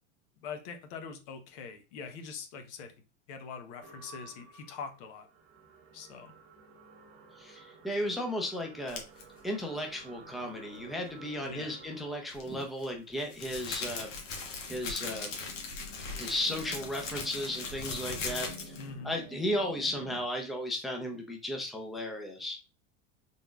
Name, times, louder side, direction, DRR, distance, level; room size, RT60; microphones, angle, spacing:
voice 1, 0.4-2.9 3.3-5.3 5.9-6.3 11.4-11.8 18.8-19.2, left 5 dB, 65° left, 7 dB, 1.0 m, -43 dB
sound 1, 3.8-20.2, right 2 dB, 75° right, 1.2 m, -52 dB
voice 2, 7.4-9.0 9.4-14.4 14.7-15.3 16.2-18.5 19.0-22.6, left 1 dB, ahead, 2 dB, 0.6 m, -35 dB
sound 2, 8.9-9.2 12.3-18.9, left 4 dB, 85° left, 1.3 m, -39 dB
4.0 x 3.6 x 2.3 m, 0.31 s
supercardioid pair, 115°, 37 cm